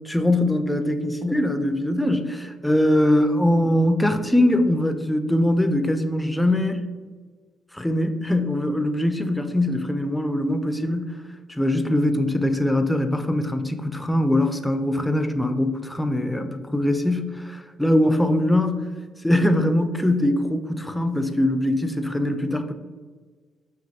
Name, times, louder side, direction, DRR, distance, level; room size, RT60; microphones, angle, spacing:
voice 1, 0.1-6.9 7.7-11.2 11.5-18.9 19.2-22.7, left 1 dB, 5° left, 7 dB, 0.4 m, -22 dB
6.2 x 2.3 x 2.7 m, 1.5 s
cardioid pair, 90°, 0 cm